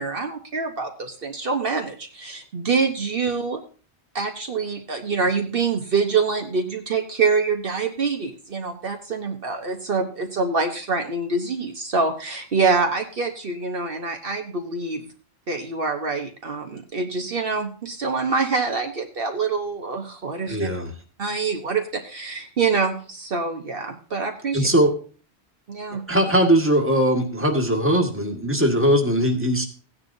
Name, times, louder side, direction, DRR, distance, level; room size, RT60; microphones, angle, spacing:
voice 1, 0.0-3.6 4.1-15.1 15.5-20.7 21.2-24.7 25.7-26.0, right 4 dB, 60° right, 4 dB, 1.2 m, -25 dB
voice 2, 20.5-20.9 24.5-24.9 26.1-29.6, right 1 dB, 10° right, 2 dB, 1.8 m, -20 dB
16.5 x 9.9 x 2.7 m, 0.38 s
omnidirectional pair, 1.1 m